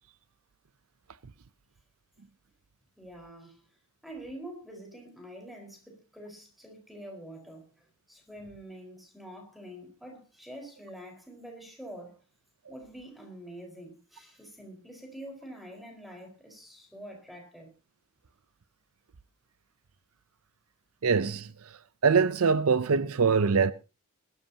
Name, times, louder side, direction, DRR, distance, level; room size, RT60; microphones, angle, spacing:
voice 1, 3.0-3.6 4.0-12.2 12.7-17.7, right 1 dB, ahead, 4.6 m, -46 dB
voice 2, 21.0-21.8 22.0-23.7, right 5 dB, 70° right, 0.6 m, -24 dB
21.5 x 13.0 x 2.9 m
head